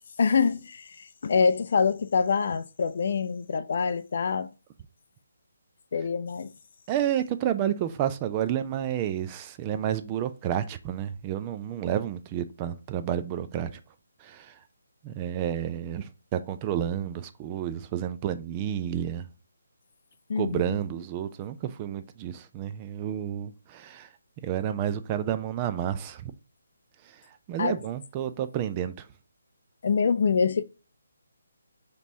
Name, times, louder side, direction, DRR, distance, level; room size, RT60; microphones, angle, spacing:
voice 1, 0.2-4.5 5.9-6.5 20.3-20.8 27.6-27.8 29.8-30.6, left 5 dB, 55° left, 0.4 m, -25 dB
voice 2, 6.9-13.7 14.2-14.5 15.0-19.3 20.4-24.1 24.4-26.3 27.5-29.1, right 10 dB, 25° right, 0.4 m, -30 dB
5.1 x 3.0 x 2.7 m
figure-of-eight pair, 150°, 0 cm